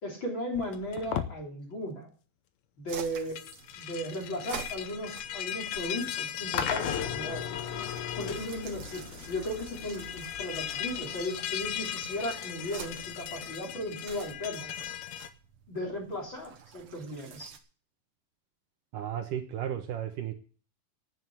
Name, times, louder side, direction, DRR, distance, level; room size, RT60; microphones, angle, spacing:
voice 1, 0.0-2.1 2.8-3.4 3.8-7.6 8.2-14.7 15.7-17.5, left 1 dB, 30° left, -1 dB, 3.9 m, -36 dB
Dragging a Fire Poker, 0.5-1.4 3.2-15.3, left 10 dB, 85° left, 1.6 m, -38 dB
sound 1, 2.9-17.6, right 7 dB, 90° right, 1.2 m, -49 dB
sound 2, 6.5-13.6, left 8 dB, 65° left, 2.2 m, -38 dB
voice 2, 18.9-20.3, right 10 dB, 70° right, 4 dB, 2.4 m, -34 dB
9.5 x 9.3 x 8.3 m, 0.41 s
omnidirectional pair, 4.4 m